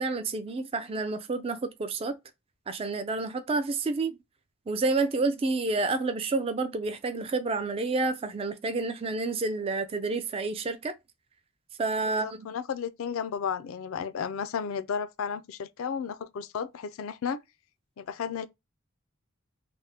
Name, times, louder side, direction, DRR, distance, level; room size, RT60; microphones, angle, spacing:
voice 1, 0.0-2.2 2.7-4.2 4.7-10.9 11.8-12.5, right 3 dB, 25° right, 0.3 m, -29 dB
voice 2, 12.1-17.4 18.0-18.5, left 7 dB, 70° left, 0.3 m, -33 dB
3.3 x 2.1 x 2.7 m
head